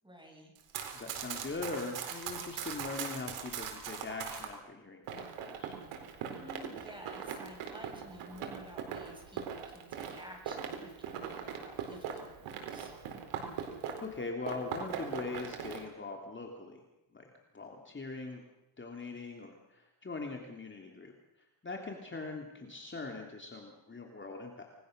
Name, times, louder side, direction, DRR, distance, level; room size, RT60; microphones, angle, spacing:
voice 1, 0.0-0.5 6.3-12.9, equal, 10° right, 2 dB, 7.4 m, -52 dB
Run, 0.6-4.5 5.1-14.2 14.4-15.8, right 7 dB, 90° right, 4.3 m, -40 dB
voice 2, 0.9-5.8 14.0-16.8 17.1-18.4 18.8-21.1 21.6-24.7, left 3 dB, 25° left, 2 dB, 3.0 m, -41 dB
29.0 x 20.5 x 6.7 m, 0.97 s
cardioid pair, 110°, 50 cm